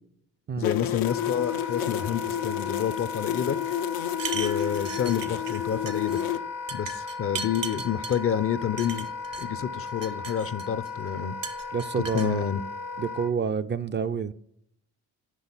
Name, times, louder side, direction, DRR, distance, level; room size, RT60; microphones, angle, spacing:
sound 1, 0.6-6.4, left 11 dB, 90° left, 0.5 m, -31 dB
voice 1, 0.6-3.6 4.3-6.4 6.7-9.1 9.4-11.4 12.0-12.6, left 9 dB, 40° left, 0.5 m, -29 dB
Wind instrument woodwind instrument, 1.0-13.3, left 4 dB, 70° left, 1.1 m, -36 dB
sound 2, 4.1-5.6 5.9-6.2 6.7-8.2 8.8-9.5 9.9-10.9 11.4-12.3, right 5 dB, 75° right, 0.9 m, -37 dB
voice 2, 11.7-12.4 13.0-14.3, right 6 dB, 35° right, 0.4 m, -28 dB
6.1 x 5.2 x 4.0 m
cardioid pair, 70°, 35 cm